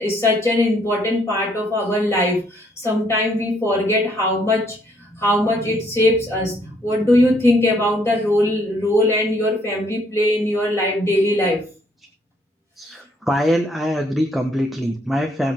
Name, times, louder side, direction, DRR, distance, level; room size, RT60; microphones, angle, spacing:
voice 1, 0.0-4.8 5.2-6.6 6.8-11.6, left 1 dB, 15° left, 7.2 m, -19 dB
voice 2, 12.8-15.5, equal, ahead, 1.2 m, -22 dB
17.5 x 7.8 x 3.8 m
head